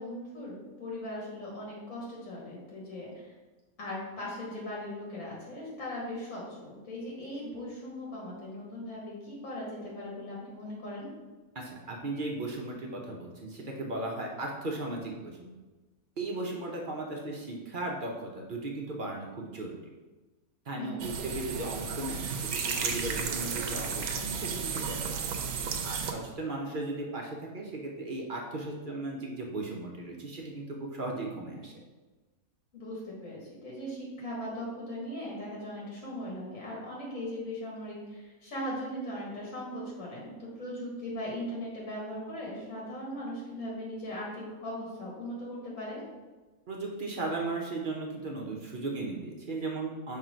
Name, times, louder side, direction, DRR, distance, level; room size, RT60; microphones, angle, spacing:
voice 1, 0.0-3.3 3.8-11.1 20.8-21.1 32.7-46.0, left 1 dB, 65° left, -5 dB, 2.1 m, -39 dB
voice 2, 11.5-15.5 16.2-19.8 20.7-25.5 25.8-31.7 46.7-50.2, right 2 dB, 45° right, -1 dB, 0.8 m, -36 dB
sound 1, 21.0-26.1, right 6 dB, 85° right, 1.2 m, -33 dB
6.0 x 3.3 x 5.0 m, 1.2 s
omnidirectional pair, 1.5 m